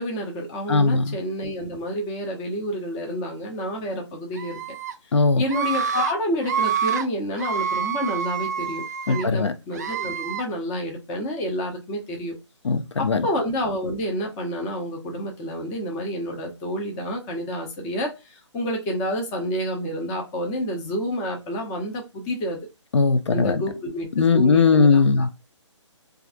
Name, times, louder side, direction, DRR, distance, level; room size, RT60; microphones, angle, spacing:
voice 1, 0.0-4.6 5.1-12.3 13.0-22.6 23.3-24.1 24.3-25.3, equal, 15° left, 0.6 m, -29 dB
voice 2, 0.7-1.2 5.1-5.4 9.1-9.5 12.6-13.2 22.9-23.6 24.2-25.3, left 4 dB, 65° left, 0.6 m, -19 dB
Screaming, 4.4-4.9 5.5-6.1 6.4-7.0 7.4-9.3 9.7-10.4, right 8 dB, 35° right, 0.3 m, -27 dB
3.2 x 2.4 x 2.4 m
figure-of-eight pair, 150°, 16 cm